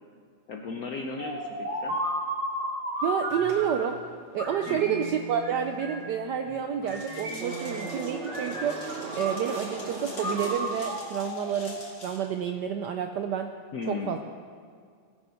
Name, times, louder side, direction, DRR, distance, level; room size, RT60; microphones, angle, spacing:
voice 1, 0.5-2.0 4.7-5.0 13.7-14.2, left 4 dB, 70° left, 2 dB, 0.9 m, -36 dB
sound 1, 1.2-3.9 4.4-6.2 6.8-8.0 8.2-9.7 10.2-12.0, equal, 20° right, 2.6 m, -34 dB
voice 2, 3.0-4.0 4.3-8.8 9.2-13.5 13.9-14.2, right 8 dB, 80° right, 6 dB, 0.9 m, -29 dB
sound 2, 3.3-11.3, right 4 dB, 60° right, 1.6 m, -39 dB
sound 3, 6.9-12.2, left 2 dB, 50° left, 2.9 m, -46 dB
18.0 x 8.0 x 5.7 m, 2.1 s
omnidirectional pair, 2.4 m